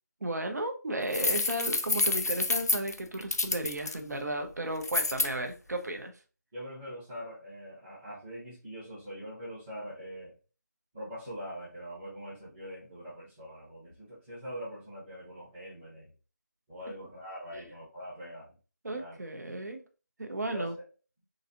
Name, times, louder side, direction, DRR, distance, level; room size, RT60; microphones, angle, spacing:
voice 1, 0.2-6.1 17.5-17.6 18.8-19.8 20.2-20.8, right 1 dB, 65° right, 0.7 m, -34 dB
sound 1, 1.1-3.9 4.8-5.3, left 3 dB, 60° left, 0.4 m, -28 dB
voice 2, 6.5-10.4 10.9-16.1 16.7-18.5 18.9-19.2 20.4-20.7, equal, 5° right, 0.6 m, -43 dB
4.0 x 2.5 x 2.5 m
figure-of-eight pair, 170°, 10 cm